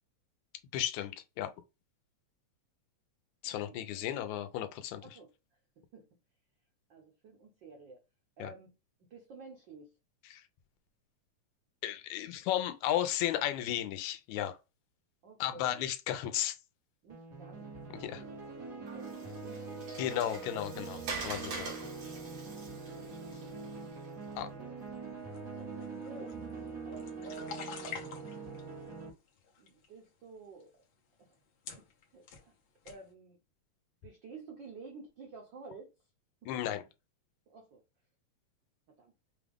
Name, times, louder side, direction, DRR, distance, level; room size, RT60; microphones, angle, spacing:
voice 1, 0.7-1.5 3.4-5.0 8.4-8.5 10.3-10.4 11.8-14.6 15.4-16.6 18.0-18.2 20.0-21.7 24.4-24.5 36.5-36.8, left 12 dB, 85° left, 2.0 m, -34 dB
voice 2, 5.0-5.3 5.8-6.1 6.9-8.0 8.4-8.7 9.1-9.9 15.2-15.8 17.0-20.2 22.8-23.5 24.2-24.8 25.5-26.4 26.8-28.0 29.6-30.8 31.2-31.4 31.8-31.9 32.1-32.5 32.8-33.4 34.0-35.9 36.4-36.5 37.5-37.8 39.0-39.1, right 4 dB, 85° right, 1.0 m, -52 dB
sound 1, 17.1-29.1, right 4 dB, 40° right, 1.3 m, -43 dB
Water, 18.9-24.2, right 4 dB, 55° right, 2.5 m, -44 dB
sound 2, 25.3-28.6 29.3-29.9 30.6-30.7 31.3-31.4 31.6-32.5 32.8-33.0, left 6 dB, 65° left, 1.4 m, -46 dB
5.7 x 2.4 x 3.4 m
omnidirectional pair, 3.3 m